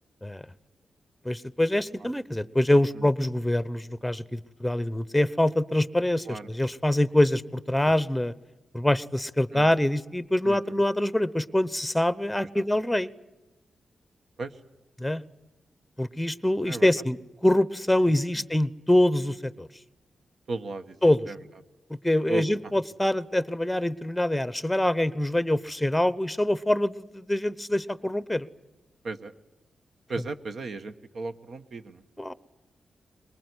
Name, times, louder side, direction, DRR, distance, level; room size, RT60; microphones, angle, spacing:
voice 1, 1.2-8.3 8.7-13.1 15.0-15.2 16.0-19.7 21.0-21.2 22.0-28.5 32.2-32.3, left 1 dB, 5° left, 17 dB, 0.8 m, -25 dB
voice 2, 10.4-10.8 12.6-12.7 14.4-14.6 16.7-16.9 18.1-18.4 20.5-21.0 21.3-21.4 22.3-22.8 29.0-29.3 30.1-32.0, right 3 dB, 70° right, 9 dB, 1.1 m, -36 dB
22.5 x 20.0 x 9.7 m, 1.1 s
cardioid pair, 60°, 0 cm